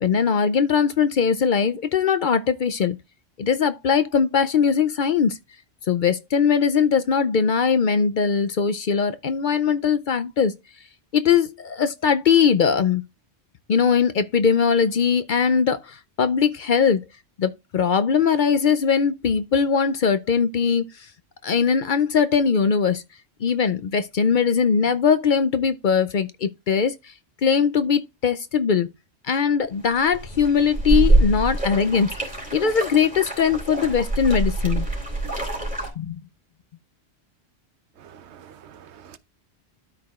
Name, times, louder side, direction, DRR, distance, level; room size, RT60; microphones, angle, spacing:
voice 1, 0.0-3.0 3.4-5.4 5.9-10.6 11.1-13.0 13.7-17.0 17.4-20.8 21.4-23.0 23.4-27.0 27.4-28.9 29.2-32.1 32.5-34.9 36.0-36.2, left 6 dB, 55° left, 0.6 m, -20 dB
sound 1, 29.9-35.9, right 2 dB, 5° right, 3.1 m, -24 dB
voice 2, 38.0-39.2, right 9 dB, 80° right, 1.0 m, -47 dB
12.5 x 4.8 x 2.4 m
omnidirectional pair, 1.1 m